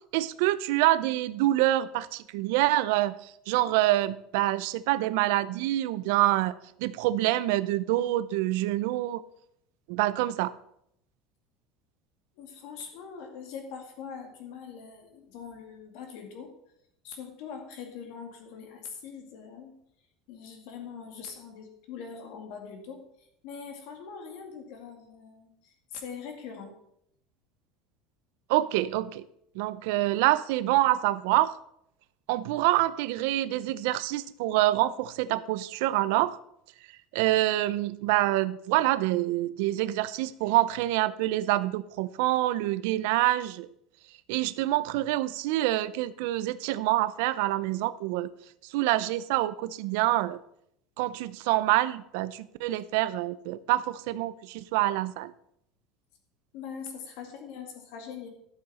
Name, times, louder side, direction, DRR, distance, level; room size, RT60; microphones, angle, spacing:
voice 1, 0.1-6.5 6.8-9.2 9.9-10.5 28.5-29.2 29.6-31.6 32.3-36.4 37.1-43.7 44.3-48.3 48.7-50.4 51.0-55.3, right 16 dB, 70° right, 16 dB, 0.5 m, -26 dB
voice 2, 12.4-16.5 17.0-19.8 20.3-26.8 56.5-58.3, left 6 dB, 60° left, 4 dB, 2.1 m, -42 dB
12.5 x 6.9 x 4.1 m, 0.75 s
cardioid pair, 175°, 0 cm